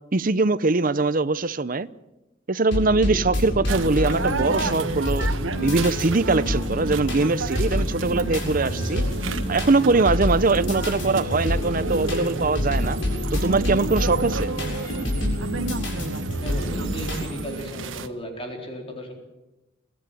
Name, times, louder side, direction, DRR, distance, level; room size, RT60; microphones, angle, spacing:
voice 1, 0.1-1.9 2.5-5.3 5.6-9.0 9.5-13.0 13.3-14.5, right 3 dB, 45° right, 15 dB, 0.7 m, -22 dB
sound 1, 2.7-17.2, left 1 dB, 75° left, 7.9 m, -27 dB
sound 2, 3.7-18.1, right 3 dB, 90° right, 1.3 m, -32 dB
voice 2, 16.4-19.1, equal, 30° left, 2 dB, 4.0 m, -35 dB
23.5 x 14.5 x 9.4 m, 1.0 s
head